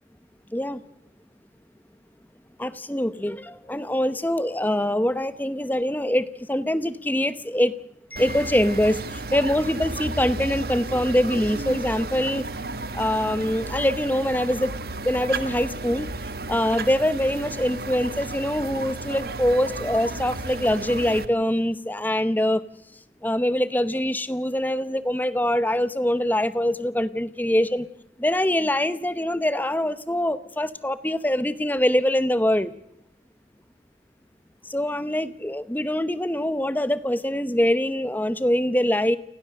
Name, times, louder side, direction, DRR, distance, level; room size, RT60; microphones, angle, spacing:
voice 1, 2.6-7.7 8.1-12.5 12.9-14.7 15.0-16.1 16.5-22.6 23.2-27.9 28.2-32.7 34.7-39.2, left 1 dB, 10° left, 14 dB, 0.9 m, -24 dB
sound 1, 8.2-21.3, right 3 dB, 55° right, 1.2 m, -33 dB
29.5 x 17.0 x 6.6 m, 0.85 s
head